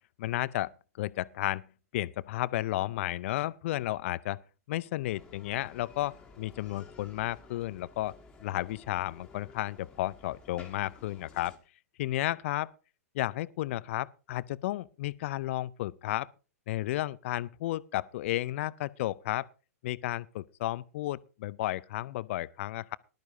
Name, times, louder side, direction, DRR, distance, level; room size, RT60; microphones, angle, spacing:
voice 1, 0.2-1.7 1.9-4.4 4.7-11.5 12.0-12.7 13.1-16.3 16.7-19.5 19.8-23.0, left 15 dB, 55° left, 0.5 m, -33 dB
Bicycle, 5.0-11.6, left 3 dB, 10° left, 2.2 m, -54 dB
19.0 x 12.0 x 2.6 m
hypercardioid pair, 110°, 8 cm